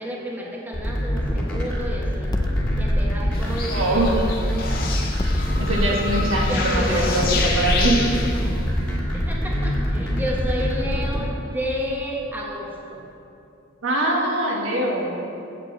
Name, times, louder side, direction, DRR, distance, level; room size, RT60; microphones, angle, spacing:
voice 1, 0.0-2.3 2.7-4.3 5.9-6.0 6.5-7.5 9.1-13.0, equal, 10° right, -3 dB, 1.5 m, -31 dB
sound 1, 0.7-11.2, equal, 5° left, 2.0 m, -25 dB
sound 2, 2.3-4.7 5.2-9.8, left 1 dB, 20° left, 0.6 m, -27 dB
sound 3, 3.3-8.7, left 4 dB, 50° left, 1.5 m, -29 dB
voice 2, 3.7-4.2 5.6-8.0 13.8-15.2, right 1 dB, 85° right, -1 dB, 1.8 m, -23 dB
8.9 x 7.7 x 7.6 m, 2.7 s
head